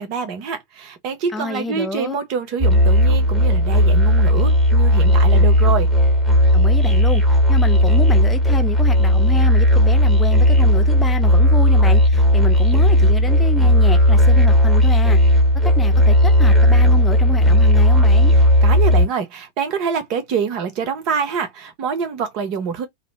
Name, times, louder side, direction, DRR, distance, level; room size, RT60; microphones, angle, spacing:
voice 1, 0.0-5.9 18.6-22.9, right 6 dB, 40° right, 0.7 m, -25 dB
voice 2, 1.3-2.2 6.5-15.2 15.6-18.3, left 2 dB, 10° left, 0.5 m, -28 dB
Musical instrument, 2.6-19.1, left 1 dB, 10° right, 1.1 m, -14 dB
2.6 x 2.0 x 3.2 m
figure-of-eight pair, 90°, 0 cm